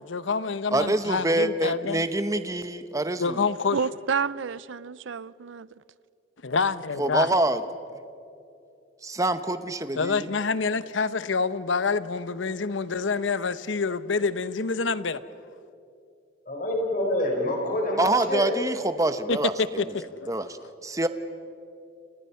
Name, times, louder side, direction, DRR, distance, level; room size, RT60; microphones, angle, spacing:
voice 1, 0.0-2.0 3.2-3.8 6.4-7.3 10.0-15.2 19.3-20.3, left 4 dB, 85° left, 0.9 m, -27 dB
voice 2, 0.7-3.4 7.0-7.6 9.0-10.3 18.0-19.8 20.3-21.1, right 2 dB, 15° right, 1.0 m, -26 dB
voice 3, 3.7-5.8, right 6 dB, 90° right, 0.6 m, -30 dB
voice 4, 16.5-18.5 19.0-19.1, left 1 dB, 45° left, 4.5 m, -27 dB
29.5 x 29.0 x 5.7 m
head